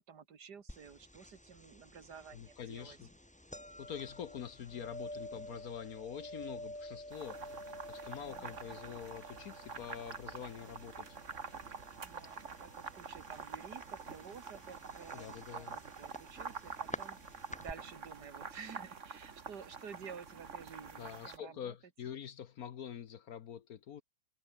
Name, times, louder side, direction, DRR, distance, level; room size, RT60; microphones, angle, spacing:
voice 1, 0.0-3.0 4.7-5.0 8.2-8.7 12.0-21.7, right 6 dB, 80° right, 2.5 m, -52 dB
sound 1, 0.7-17.7, left 1 dB, 5° left, 1.3 m, -50 dB
voice 2, 2.3-3.1 3.8-7.6 7.9-11.2 15.1-15.8 21.0-24.0, left 8 dB, 65° left, 1.4 m, -45 dB
sound 2, 7.1-21.4, right 5 dB, 50° right, 2.0 m, -47 dB
omnidirectional pair, 1.7 m